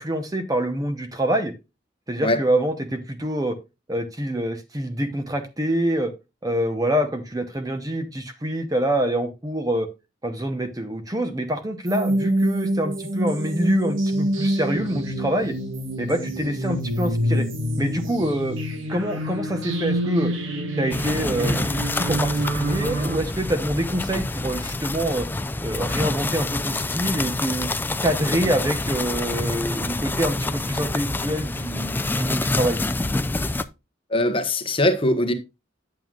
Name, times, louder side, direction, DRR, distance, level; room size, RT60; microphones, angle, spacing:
voice 1, 0.0-1.5 2.1-3.6 3.9-6.1 6.4-9.9 10.2-15.5 16.0-17.5 17.8-18.6 18.9-20.3 20.8-25.3 25.6-27.7 28.0-31.9 32.2-32.8, right 1 dB, 20° right, 0.8 m, -26 dB
sound 1, 11.9-23.2, right 1 dB, 85° right, 1.6 m, -26 dB
sound 2, 20.9-33.6, left 2 dB, 10° left, 0.3 m, -27 dB
voice 2, 34.1-35.3, left 1 dB, 30° left, 1.1 m, -21 dB
9.0 x 7.6 x 2.4 m
head